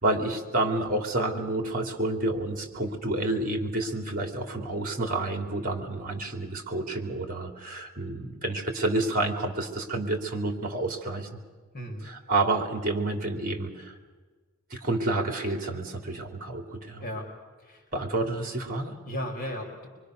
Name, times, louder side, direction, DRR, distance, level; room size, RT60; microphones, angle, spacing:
voice 1, 0.0-11.4 12.0-14.0 14.7-17.0 17.9-18.9, right 2 dB, 40° right, 5 dB, 3.1 m, -29 dB
voice 2, 11.7-12.1 17.0-17.3 17.6-17.8 19.1-19.9, equal, 45° left, 2 dB, 4.1 m, -35 dB
25.5 x 23.5 x 6.7 m, 1.4 s
head